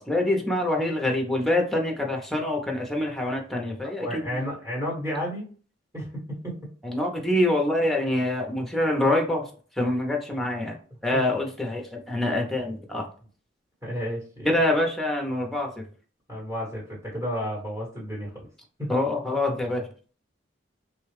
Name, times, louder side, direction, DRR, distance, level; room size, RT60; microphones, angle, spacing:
voice 1, 0.1-4.4 6.8-9.4 9.8-10.7 11.0-13.0 14.4-15.8 18.9-19.9, left 1 dB, ahead, 1 dB, 0.7 m, -25 dB
voice 2, 4.0-5.5 5.9-6.6 11.1-11.2 13.8-14.5 16.3-18.5 18.8-18.9, equal, 20° right, -6 dB, 1.2 m, -32 dB
3.2 x 2.3 x 3.2 m, 0.40 s
head